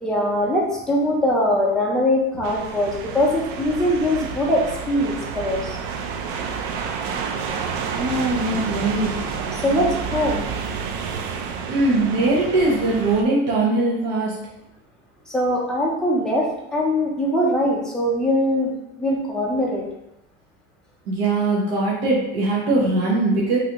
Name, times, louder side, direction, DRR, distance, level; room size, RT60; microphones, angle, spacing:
voice 1, 0.0-5.8 9.5-10.5 15.3-18.7 19.0-19.8, left 1 dB, ahead, -3 dB, 0.5 m, -22 dB
sound 1, 2.4-13.2, right 6 dB, 60° right, 0.4 m, -29 dB
voice 2, 7.8-9.1 11.7-14.4 21.1-23.6, right 2 dB, 75° right, -5 dB, 0.9 m, -21 dB
3.2 x 2.5 x 2.8 m, 0.89 s
supercardioid pair, 145°, 30 cm